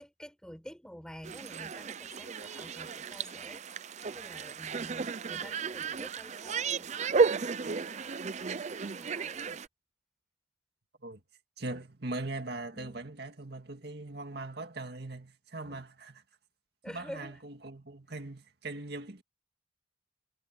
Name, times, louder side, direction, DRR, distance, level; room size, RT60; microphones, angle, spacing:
voice 1, 0.0-9.6 11.7-11.8 12.7-13.1 15.6-15.8 16.8-17.4, equal, 5° left, 5.3 m, -49 dB
sound 1, 1.2-9.7, right 5 dB, 40° right, 0.5 m, -33 dB
voice 2, 11.6-16.2 16.9-19.2, right 2 dB, 65° right, 2.1 m, -40 dB
head